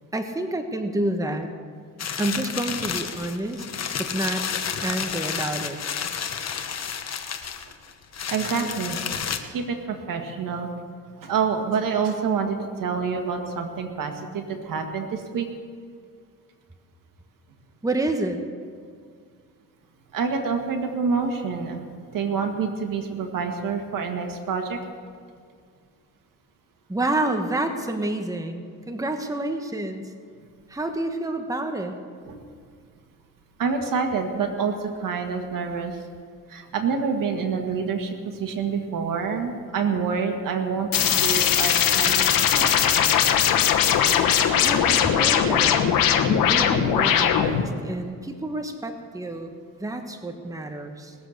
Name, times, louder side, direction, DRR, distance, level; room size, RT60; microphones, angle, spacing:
voice 1, 0.1-1.5 2.2-3.7 4.0-4.4 4.8-5.8 17.8-18.4 26.9-30.1 30.7-32.0 44.6-45.8 46.3-51.1, right 2 dB, 10° right, 5 dB, 1.2 m, -29 dB
sound 1, 2.0-9.4, left 7 dB, 50° left, 1.1 m, -31 dB
voice 2, 8.3-9.0 9.5-10.7 11.2-15.5 20.1-21.8 22.1-24.8 32.3-32.4 33.6-36.0 36.5-40.9 41.2-42.8, right 5 dB, 70° right, 4 dB, 1.9 m, -27 dB
sound 2, 40.9-47.7, left 9 dB, 85° left, 1.1 m, -20 dB
20.0 x 7.5 x 6.6 m, 2.1 s
cardioid pair, 95°, 34 cm